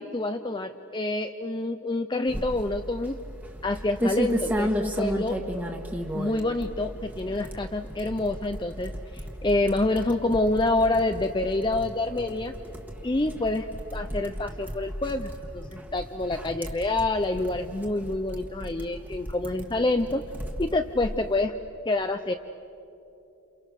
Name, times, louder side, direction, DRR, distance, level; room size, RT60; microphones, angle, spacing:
voice 1, 0.0-3.2 3.6-5.4 6.1-12.5 13.0-20.3 20.6-21.6 21.9-22.3, left 2 dB, 20° left, 7 dB, 0.5 m, -27 dB
sound 1, 2.3-21.4, equal, 10° right, 1.5 m, -34 dB
29.5 x 28.0 x 6.6 m, 3.0 s
head